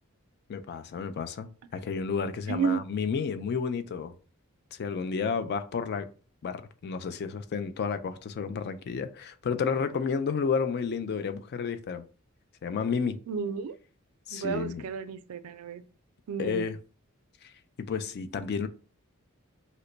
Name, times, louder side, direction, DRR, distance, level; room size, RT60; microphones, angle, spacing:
voice 1, 0.5-4.1 4.7-6.1 6.4-12.1 12.6-13.2 14.3-14.8 16.4-16.8 17.4-17.5 17.8-18.7, left 5 dB, 50° left, 0.3 m, -31 dB
voice 2, 2.5-2.8 13.3-13.7 14.3-15.8 16.3-16.7, right 5 dB, 75° right, 0.4 m, -32 dB
2.9 x 2.2 x 3.8 m
head